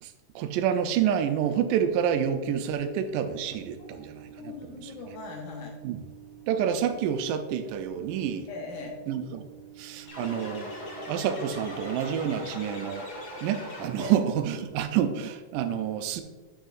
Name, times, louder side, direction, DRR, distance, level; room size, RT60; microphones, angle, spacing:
voice 1, 0.0-4.9 5.8-6.0 6.5-8.5 9.1-9.5 9.8-10.7 11.1-13.1 13.4-16.2, right 9 dB, 85° right, 8 dB, 2.1 m, -28 dB
Microwave oven, 1.9-15.4, right 10 dB, 60° right, 1.5 m, -50 dB
voice 2, 3.8-5.8 8.5-9.0 14.0-14.2, left 4 dB, 75° left, 1 dB, 2.6 m, -40 dB
sound 1, 10.1-14.2, left 1 dB, 45° left, 1.4 m, -40 dB
8.3 x 6.3 x 2.5 m, 1.3 s
omnidirectional pair, 3.7 m